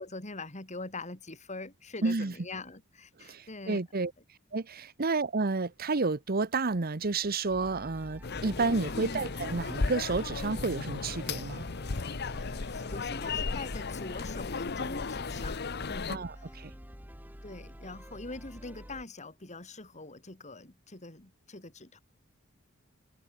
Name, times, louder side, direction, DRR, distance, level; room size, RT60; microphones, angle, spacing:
voice 1, 0.0-3.8 8.9-9.2 12.4-16.6 17.4-22.0, left 2 dB, 35° left, 3.5 m, -43 dB
voice 2, 2.0-2.3 3.2-4.1 4.5-11.7 16.1-16.7, right 3 dB, 45° right, 0.9 m, -31 dB
sound 1, 7.5-19.0, equal, 10° right, 5.9 m, -48 dB
sound 2, 8.2-16.2, left 4 dB, 50° left, 0.9 m, -35 dB
open air
head